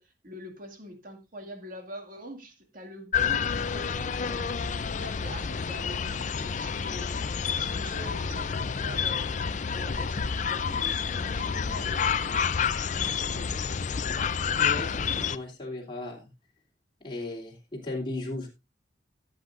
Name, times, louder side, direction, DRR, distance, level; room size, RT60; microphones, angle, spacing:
voice 1, 0.0-9.4 9.7-12.5 12.9-13.6, equal, 50° right, 2.1 m, -44 dB
sound 1, 3.1-15.4, left 6 dB, 45° left, 0.5 m, -29 dB
voice 2, 14.6-16.3 17.0-18.5, left 2 dB, 25° left, 3.0 m, -36 dB
16.0 x 7.9 x 2.5 m
head